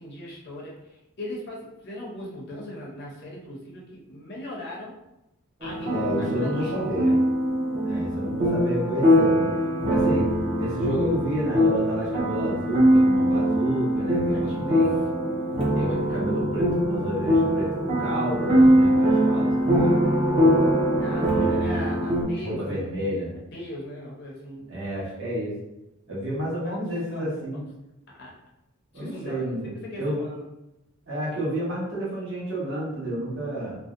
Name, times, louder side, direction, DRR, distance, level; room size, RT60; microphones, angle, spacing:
voice 1, 0.0-5.0 5.6-7.2 14.3-14.8 21.0-23.1 23.5-24.7 26.6-27.3 28.2-28.4 28.9-30.4, left 1 dB, 50° left, -4 dB, 0.6 m, -38 dB
sound 1, 5.6-22.2, equal, 25° right, 0.4 m, -22 dB
voice 2, 5.9-7.1 7.8-9.5 9.8-10.3 10.5-15.0 15.7-20.0 21.3-21.9 22.4-23.3 24.7-25.5 26.1-27.6 28.9-30.2 31.1-33.8, right 1 dB, 60° right, -7 dB, 1.1 m, -30 dB
2.6 x 2.0 x 2.4 m, 0.92 s
head